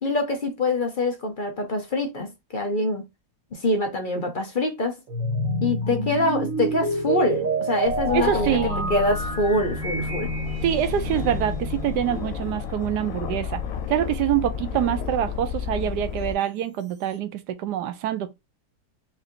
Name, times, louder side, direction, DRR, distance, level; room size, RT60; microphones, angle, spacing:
voice 1, 0.0-3.0 3.5-5.0 5.6-8.6 8.9-10.3, left 2 dB, 40° left, 0.8 m, -25 dB
sound 1, 5.1-12.3, right 2 dB, 60° right, 1.8 m, -29 dB
Aircraft, 7.8-16.3, left 7 dB, 65° left, 0.9 m, -31 dB
voice 2, 8.1-8.9 10.6-13.6 13.9-18.3, right 10 dB, 80° right, 1.2 m, -25 dB
5.0 x 2.7 x 2.7 m
omnidirectional pair, 1.8 m